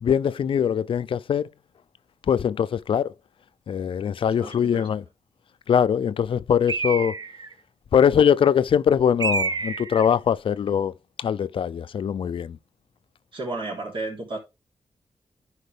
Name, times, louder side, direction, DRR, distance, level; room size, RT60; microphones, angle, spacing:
voice 1, 0.0-1.5 2.3-3.1 3.7-5.0 5.7-7.1 7.9-10.9 11.2-12.6, left 8 dB, 70° left, 0.4 m, -22 dB
voice 2, 4.4-4.9 13.3-14.4, right 2 dB, 65° right, 3.5 m, -32 dB
Bird, 6.7-7.5 9.2-10.1, right 4 dB, 45° right, 0.8 m, -28 dB
10.5 x 4.7 x 3.4 m
cardioid pair, 70°, 9 cm